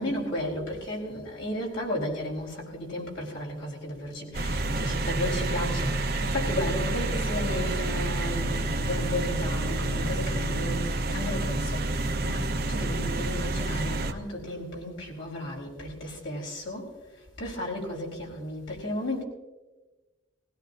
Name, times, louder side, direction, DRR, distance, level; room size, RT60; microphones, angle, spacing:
voice 1, 0.0-16.9 17.4-19.2, left 1 dB, 70° left, 4.4 m, -34 dB
sound 1, 4.3-14.1, right 2 dB, 50° right, 1.0 m, -28 dB
20.0 x 17.0 x 2.7 m
head